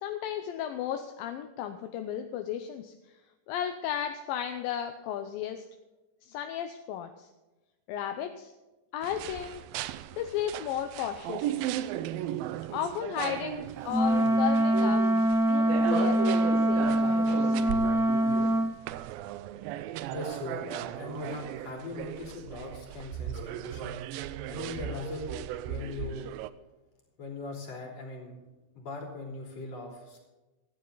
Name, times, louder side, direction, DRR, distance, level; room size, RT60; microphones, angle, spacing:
voice 1, 0.0-2.9 3.5-5.6 6.2-7.3 7.9-8.5 8.9-9.6 10.1-11.6 12.7-15.0 15.5-17.6, left 9 dB, 80° left, 7 dB, 2.6 m, -34 dB
sound 1, 9.0-26.5, right 12 dB, 85° right, 2.4 m, -36 dB
Wind instrument woodwind instrument, 13.9-18.7, right 1 dB, ahead, 0.7 m, -24 dB
voice 2, 20.1-24.0 24.5-25.4 25.6-26.3 27.2-30.2, left 3 dB, 45° left, 1 dB, 4.4 m, -40 dB
16.0 x 13.5 x 4.0 m, 1.1 s
omnidirectional pair, 4.2 m